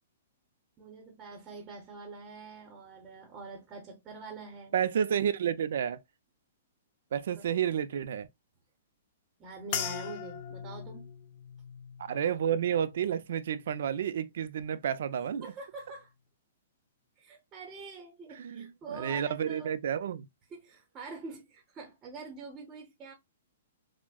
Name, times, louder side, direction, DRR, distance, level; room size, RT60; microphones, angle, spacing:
voice 1, 0.8-4.7 7.3-7.7 9.4-11.1 15.4-16.1 17.2-19.7 20.5-23.1, right 3 dB, 15° right, 0.8 m, -45 dB
voice 2, 4.7-6.0 7.1-8.3 12.0-15.5 18.4-20.3, right 8 dB, 55° right, 0.4 m, -30 dB
sound 1, 9.7-14.3 14.6-15.2 15.8-16.1, left 8 dB, 30° left, 0.4 m, -42 dB
6.0 x 2.1 x 2.3 m
hypercardioid pair, 175°, 0 cm